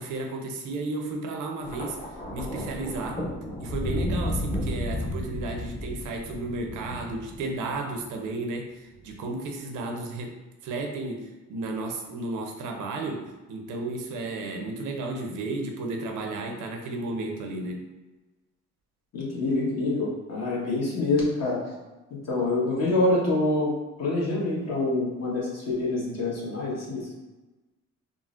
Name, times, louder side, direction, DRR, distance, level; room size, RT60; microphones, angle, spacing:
voice 1, 0.0-2.0 2.3-3.2 3.6-10.3 10.6-17.8, right 2 dB, 80° right, 3 dB, 0.6 m, -33 dB
Thunder, 1.6-8.0 8.9-9.2, left 1 dB, 20° left, 0.7 m, -33 dB
voice 2, 19.1-21.6 22.1-27.1, left 2 dB, 55° left, -6 dB, 1.3 m, -26 dB
3.7 x 2.0 x 2.4 m, 1.2 s
cardioid pair, 90°, 30 cm